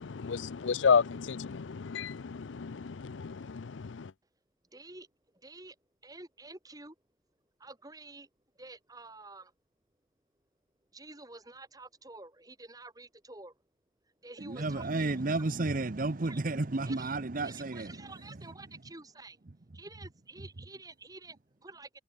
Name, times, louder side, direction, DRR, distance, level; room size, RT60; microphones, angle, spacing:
voice 1, 0.0-4.1, left 5 dB, 80° left, 0.5 m, -31 dB
voice 2, 4.7-5.1 5.3-5.7 6.0-6.9 7.6-8.3 8.6-9.5 10.9-13.5 14.2-15.4 16.2-16.4 16.8-17.1 17.4-19.4 19.7-22.0, right 2 dB, 20° right, 3.3 m, -49 dB
voice 3, 14.4-17.9, right 2 dB, 45° right, 0.8 m, -32 dB
head